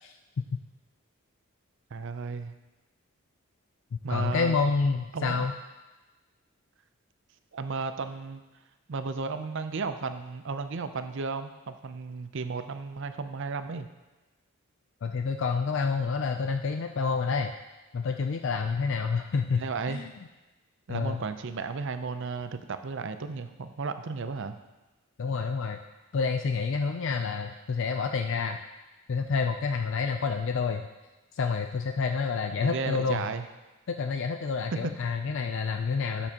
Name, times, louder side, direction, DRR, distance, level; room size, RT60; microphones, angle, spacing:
voice 1, 1.9-2.5 4.0-4.6 5.1-5.5 7.5-8.4 8.9-13.9 19.6-20.0 20.9-24.6 32.6-33.4 34.7-34.8, right 4 dB, 60° right, 9 dB, 0.5 m, -34 dB
voice 2, 4.1-5.6 15.0-17.5 17.9-20.1 20.9-21.2 25.2-25.8 26.1-28.6 29.1-30.9 31.3-33.2 33.9-36.3, left 5 dB, 60° left, 6 dB, 0.4 m, -28 dB
12.0 x 7.1 x 2.9 m, 1.1 s
head